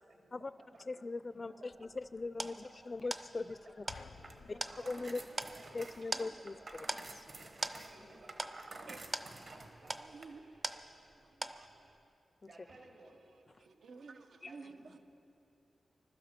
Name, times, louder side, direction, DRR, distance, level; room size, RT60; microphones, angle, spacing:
voice 1, 0.1-0.8 1.1-1.9 2.3-2.5 3.5-3.9 4.3-5.7 6.0-6.7 7.7-8.6 9.4-11.8 12.4-13.2 14.4-15.0, right 2 dB, 70° right, 2.8 m, -59 dB
voice 2, 0.8-3.8 4.5-4.6 4.9-5.2 5.7-6.5 14.4-14.5, left 3 dB, 30° left, 0.4 m, -40 dB
sound 1, 1.7-11.2 11.4-12.0, right 2 dB, 25° right, 0.5 m, -43 dB
sound 2, 3.9-6.3, left 5 dB, 80° left, 0.7 m, -56 dB
sound 3, 4.1-10.3, right 2 dB, 45° right, 1.0 m, -52 dB
voice 3, 8.9-9.4 10.1-10.6 11.6-11.7 13.6-15.0, right 4 dB, 90° right, 0.8 m, -52 dB
21.5 x 12.5 x 5.2 m
wide cardioid pair, 170°, 0 cm